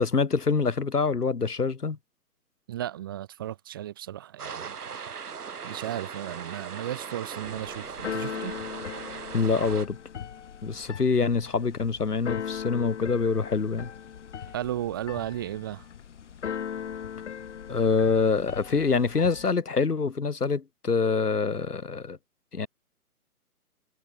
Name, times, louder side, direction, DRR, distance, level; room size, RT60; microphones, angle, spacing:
voice 1, 0.0-2.0 9.3-10.0 10.6-13.9 17.7-22.2 22.5-22.7, left 4 dB, 90° left, 1.6 m, -25 dB
voice 2, 2.7-4.7 5.6-8.6 14.5-15.9, right 12 dB, 15° right, 0.7 m, -34 dB
sound 1, 4.4-9.9, right 6 dB, 90° right, 0.9 m, -39 dB
Keyboard (musical), 7.4-19.5, left 8 dB, 50° left, 3.2 m, -39 dB
figure-of-eight pair, 140°, 45 cm